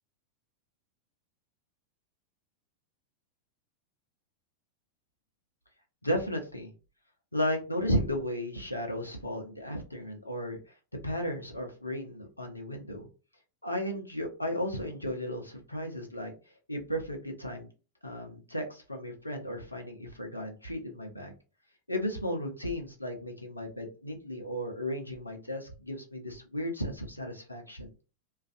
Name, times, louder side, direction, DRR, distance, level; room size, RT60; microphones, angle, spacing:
voice 1, 6.0-6.7 7.3-10.6 11.0-13.1 13.6-16.3 16.7-17.7 18.0-21.3 21.9-27.9, equal, 85° left, 3 dB, 0.5 m, -34 dB
2.4 x 2.3 x 2.5 m, 0.34 s
figure-of-eight pair, 90°, 0 cm